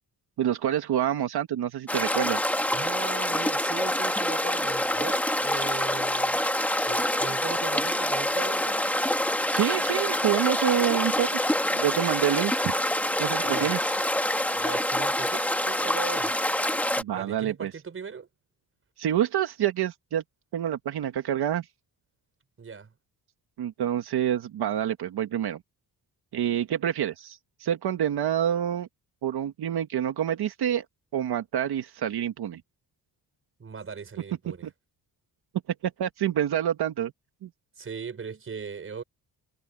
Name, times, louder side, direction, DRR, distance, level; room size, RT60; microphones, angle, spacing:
voice 1, 0.4-2.5 9.5-11.3 11.7-12.7 13.2-13.8 17.0-17.7 19.0-20.2 20.5-21.7 23.6-25.6 26.3-28.9 29.2-30.9 31.1-32.6 36.0-37.1 37.4-37.5, right 10 dB, 75° right, 1.8 m, -27 dB
sound 1, 1.9-17.0, left 1 dB, 5° left, 1.7 m, -26 dB
voice 2, 2.7-6.4 6.8-8.9 13.4-13.8 14.6-16.4 17.1-18.3 22.6-22.9 33.6-34.6 37.8-39.0, right 5 dB, 35° right, 5.3 m, -38 dB
wide cardioid pair, 175°, 39 cm